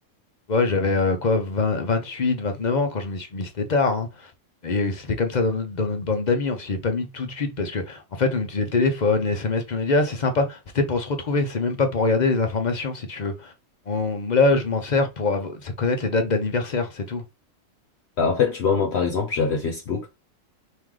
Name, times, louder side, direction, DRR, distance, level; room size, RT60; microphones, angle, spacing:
voice 1, 0.5-4.1 4.6-13.5 13.9-17.2, left 3 dB, 45° left, 0.7 m, -24 dB
voice 2, 18.2-20.1, left 5 dB, 60° left, 1.0 m, -23 dB
4.7 x 2.8 x 3.7 m
omnidirectional pair, 1.3 m